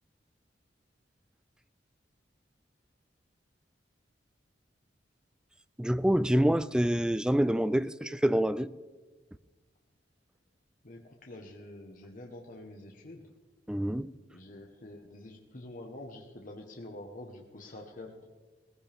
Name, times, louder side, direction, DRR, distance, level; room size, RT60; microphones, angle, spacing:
voice 1, 5.8-8.7 13.7-14.1, equal, 5° right, 0.3 m, -26 dB
voice 2, 10.8-13.3 14.3-18.3, left 1 dB, 50° left, 1.2 m, -47 dB
18.5 x 15.5 x 3.5 m
head